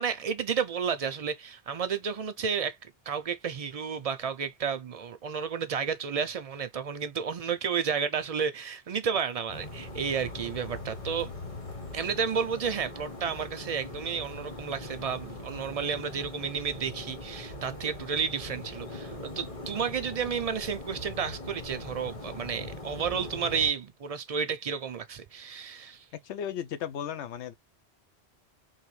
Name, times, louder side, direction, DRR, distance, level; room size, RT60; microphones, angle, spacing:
voice 1, 0.0-11.3 11.9-26.1, right 6 dB, 55° right, 0.4 m, -32 dB
sound 1, 9.5-23.7, left 2 dB, 35° left, 1.0 m, -41 dB
voice 2, 26.2-27.5, left 9 dB, 90° left, 0.9 m, -35 dB
3.9 x 2.7 x 3.1 m
omnidirectional pair, 1.1 m